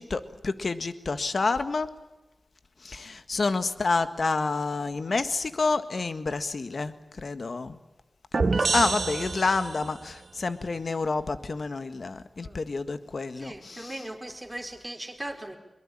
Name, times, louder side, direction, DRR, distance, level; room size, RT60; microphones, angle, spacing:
voice 1, 0.0-1.9 2.8-7.8 8.3-13.9, left 3 dB, 60° left, 11 dB, 1.7 m, -29 dB
sound 1, 8.3-10.0, right 3 dB, 55° right, 1.3 m, -27 dB
voice 2, 13.4-15.6, right 1 dB, 15° right, 3 dB, 4.8 m, -38 dB
22.5 x 22.5 x 8.8 m, 1.1 s
cardioid pair, 50°, 0 cm